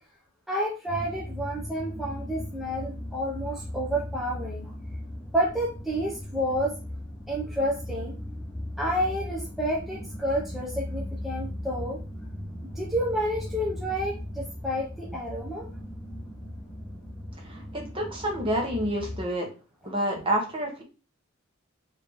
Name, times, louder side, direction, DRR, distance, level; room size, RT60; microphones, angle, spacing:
voice 1, 0.5-4.7 5.3-6.7 7.3-8.2 8.8-12.0 12.8-15.7, equal, ahead, -4 dB, 0.7 m, -30 dB
sound 1, 0.9-19.2, left 1 dB, 15° left, 1.1 m, -38 dB
voice 2, 17.4-19.5 19.8-20.8, right 1 dB, 25° right, 0 dB, 1.0 m, -28 dB
3.6 x 2.8 x 3.4 m, 0.33 s
head